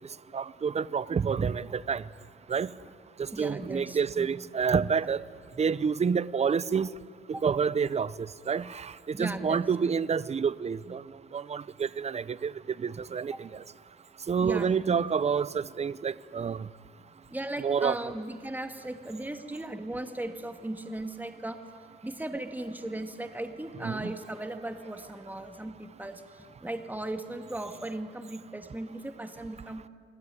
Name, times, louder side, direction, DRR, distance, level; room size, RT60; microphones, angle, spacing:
voice 1, 0.3-2.1 2.5-2.7 3.2-5.2 5.6-6.9 7.3-12.5 12.8-13.6 14.3-16.7 17.6-18.0 23.8-24.1, right 6 dB, 35° right, 0.7 m, -28 dB
voice 2, 3.3-4.3 7.3-7.4 9.1-9.6 13.3-13.4 14.4-15.0 17.3-21.6 22.0-29.8, right 1 dB, 10° right, 2.4 m, -37 dB
29.0 x 20.5 x 9.9 m
cardioid pair, 90°, 20 cm